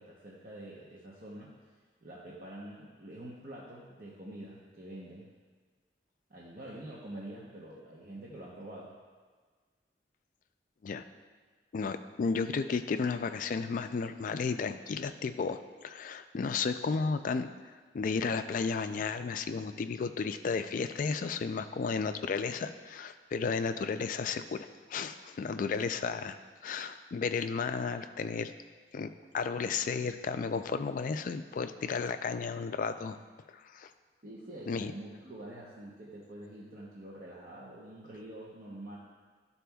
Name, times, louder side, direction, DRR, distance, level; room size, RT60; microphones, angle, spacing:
voice 1, 0.0-1.5 2.0-5.3 6.3-8.9 34.2-39.0, right 1 dB, 50° right, -6 dB, 0.8 m, -46 dB
voice 2, 11.7-17.5 17.9-26.4 26.6-28.5 28.9-29.1 29.3-33.2 33.5-33.9 34.7-34.9, left 5 dB, 50° left, 9 dB, 0.3 m, -33 dB
12.5 x 4.1 x 2.3 m, 1.5 s
head